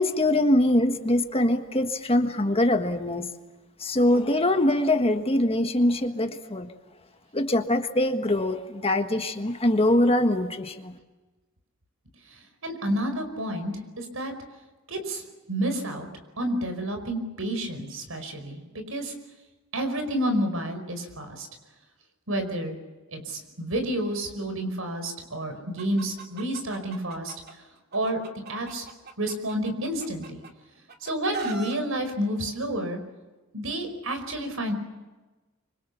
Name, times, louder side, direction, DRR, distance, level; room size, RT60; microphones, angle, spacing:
voice 1, 0.0-3.3 3.8-6.7 7.3-10.9, left 1 dB, 30° left, 6 dB, 1.6 m, -23 dB
voice 2, 12.3-14.3 14.9-15.2 15.5-16.1 16.4-19.1 19.7-21.5 22.3-22.8 23.1-27.3 27.9-28.2 28.5-28.9 29.2-30.4 31.0-33.0 33.5-34.7, right 1 dB, 90° right, 6 dB, 5.1 m, -30 dB
Chicken rooster, 25.8-27.5 27.9-30.5 30.9-31.8, right 5 dB, 50° right, 2.5 m, -39 dB
25.5 x 25.0 x 7.2 m, 1.2 s
head